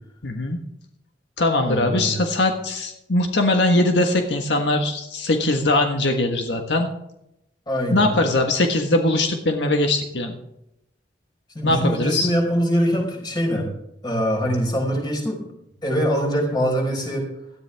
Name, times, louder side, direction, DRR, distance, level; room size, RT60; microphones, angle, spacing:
voice 1, 0.2-0.6 1.4-6.9 7.9-10.4 11.6-12.3, left 2 dB, 80° left, 4 dB, 1.5 m, -21 dB
voice 2, 1.7-2.2 7.7-8.1 11.5-13.7 14.0-15.5 15.8-17.3, equal, 25° left, 1 dB, 4.8 m, -23 dB
17.5 x 13.0 x 3.5 m, 0.83 s
head